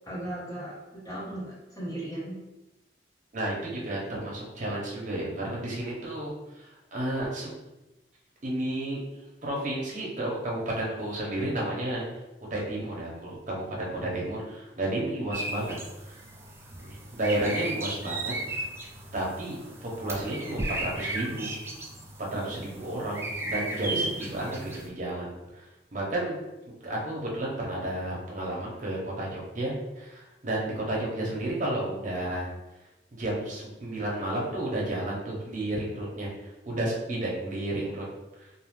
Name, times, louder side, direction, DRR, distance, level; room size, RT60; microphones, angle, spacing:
voice 1, 0.0-2.4 22.3-22.5, right 1 dB, 20° left, -8 dB, 1.1 m, -37 dB
voice 2, 3.3-7.5 8.4-9.0 9.4-12.1 12.5-15.7 16.0-16.2 16.8-18.7 19.1-19.6 19.8-21.5 22.3-26.4 26.7-32.5 33.1-38.0, right 1 dB, 45° right, -4 dB, 0.8 m, -32 dB
sound 1, 15.3-24.9, right 2 dB, 15° right, 0.4 m, -35 dB
2.6 x 2.4 x 3.1 m, 1.0 s
head